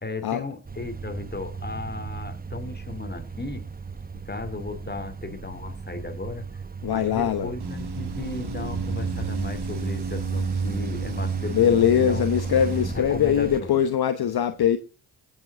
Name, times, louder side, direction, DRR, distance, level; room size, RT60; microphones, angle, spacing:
voice 1, 0.0-3.6 4.3-6.5 6.9-12.2 12.9-13.8, left 3 dB, 20° left, 2.9 m, -35 dB
sound 1, 0.6-13.6, right 5 dB, 20° right, 0.9 m, -37 dB
voice 2, 6.8-7.5 11.5-14.8, left 9 dB, 50° left, 1.0 m, -22 dB
sound 2, 7.6-13.0, right 4 dB, 50° right, 2.5 m, -31 dB
17.0 x 7.4 x 3.7 m
hypercardioid pair, 45°, 49 cm